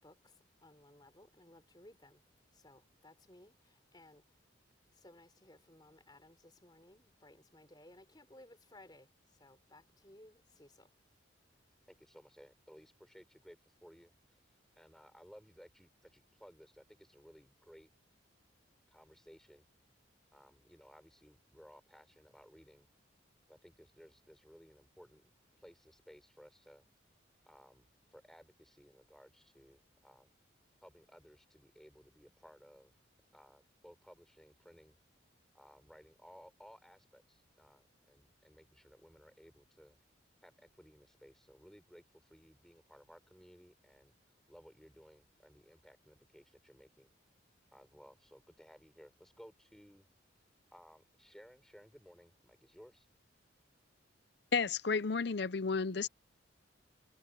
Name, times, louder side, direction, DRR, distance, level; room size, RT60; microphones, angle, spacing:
voice 1, 0.0-0.3 0.6-2.2 2.5-4.2 4.9-10.9, left 1 dB, 20° left, 4.1 m, -60 dB
voice 2, 11.9-17.9 18.9-19.6 20.3-22.9 23.5-25.2 25.6-26.8 27.4-30.3 30.8-33.0 33.3-35.0 35.5-40.0 40.4-47.1 47.7-50.1 50.4-53.1, equal, ahead, 6.6 m, -59 dB
voice 3, 54.5-56.1, left 5 dB, 55° left, 0.7 m, -32 dB
head